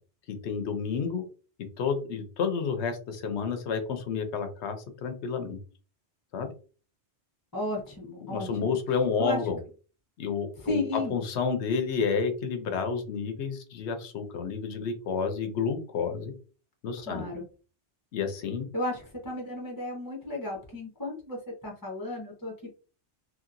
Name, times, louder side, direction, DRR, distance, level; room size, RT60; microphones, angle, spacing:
voice 1, 0.3-1.2 1.8-4.8 5.0-5.6 6.3-6.5 8.2-9.6 10.2-16.3 16.8-17.3 18.1-18.7, left 5 dB, 75° left, 7 dB, 0.9 m, -30 dB
voice 2, 7.5-8.8 9.2-9.4 10.6-11.2 17.1-17.4 18.7-22.7, left 1 dB, 20° left, -2 dB, 0.8 m, -34 dB
2.9 x 2.8 x 2.5 m, 0.37 s
omnidirectional pair, 1.2 m